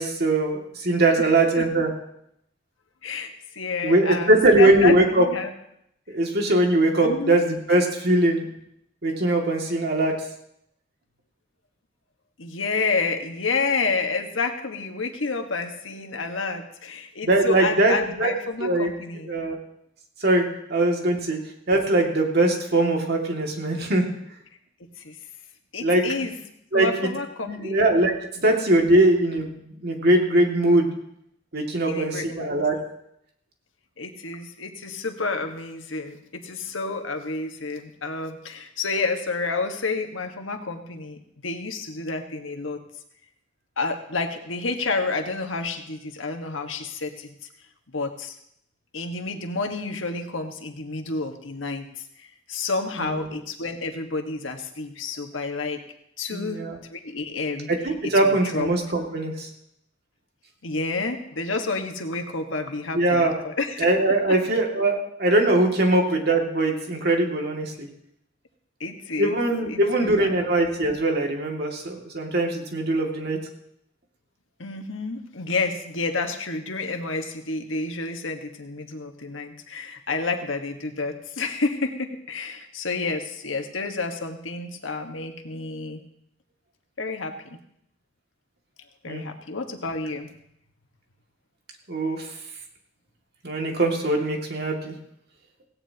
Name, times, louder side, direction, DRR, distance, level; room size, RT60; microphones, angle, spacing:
voice 1, 0.0-1.9 3.8-5.3 6.1-8.5 9.0-10.1 17.2-18.3 18.6-18.9 19.3-19.6 20.2-20.4 20.7-21.4 21.7-24.1 25.8-26.0 26.7-26.9 27.4-28.1 28.4-30.9 31.5-32.8 53.0-53.3 56.3-56.8 57.7-59.5 62.9-63.3 63.8-67.9 69.2-73.4 89.1-89.2 91.9-92.3 93.4-94.9, right 2 dB, 55° right, 1 dB, 2.3 m, -21 dB
voice 2, 1.2-1.6 3.0-5.5 7.0-7.4 12.4-19.3 25.0-25.1 25.7-26.4 26.7-27.9 31.9-32.5 34.0-42.8 43.8-47.3 47.9-48.3 48.9-51.9 52.5-55.8 56.2-56.6 56.9-57.7 58.2-58.7 60.6-63.8 68.8-69.4 69.7-70.5 74.6-86.0 87.0-87.3 89.0-90.3, left 3 dB, 85° left, 5 dB, 1.6 m, -29 dB
17.0 x 17.0 x 2.9 m, 0.75 s
head